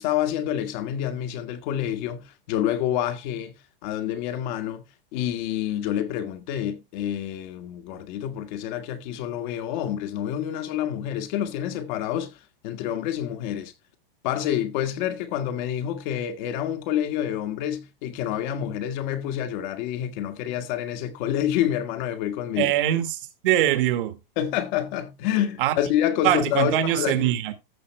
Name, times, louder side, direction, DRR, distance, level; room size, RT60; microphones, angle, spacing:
voice 1, 0.0-3.5 3.8-4.8 5.1-12.4 12.6-13.7 14.2-22.7 24.4-27.2, left 11 dB, 50° left, 1.8 m, -28 dB
voice 2, 22.6-24.2 25.6-25.8 26.2-27.5, right 12 dB, 60° right, 1.8 m, -23 dB
14.0 x 5.8 x 3.3 m
hypercardioid pair, 135°, 29 cm